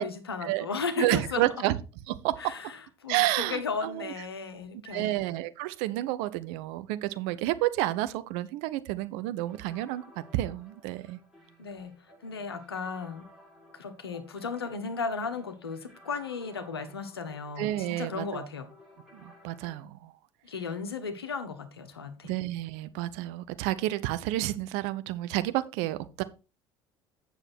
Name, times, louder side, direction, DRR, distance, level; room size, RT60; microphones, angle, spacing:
voice 1, 0.0-1.4 2.4-2.7 3.0-5.2 11.6-12.0 12.2-13.2 13.7-18.7 20.4-22.3, left 5 dB, 85° left, 1.2 m, -35 dB
voice 2, 1.0-1.8 2.1-2.4 3.1-4.1 4.9-11.2 17.6-18.5 19.1-20.1 22.2-26.2, right 15 dB, 60° right, 0.8 m, -30 dB
sound 1, 9.5-19.8, left 1 dB, 5° right, 6.4 m, -56 dB
8.7 x 6.8 x 4.4 m
figure-of-eight pair, 60°, 13 cm